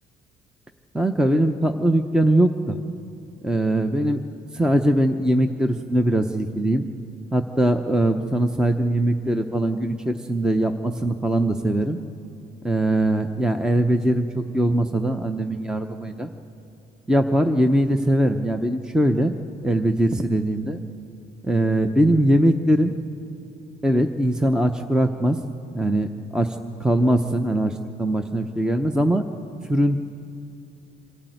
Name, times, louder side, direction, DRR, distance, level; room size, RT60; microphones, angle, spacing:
voice 1, 0.9-2.8 3.4-4.2 4.5-6.8 7.3-12.0 12.6-16.3 17.1-20.8 21.4-22.9 23.8-25.4 25.7-29.3 29.7-30.0, right 1 dB, 5° right, 7 dB, 0.7 m, -21 dB
26.0 x 12.0 x 9.3 m, 2.6 s
cardioid pair, 110°, 17 cm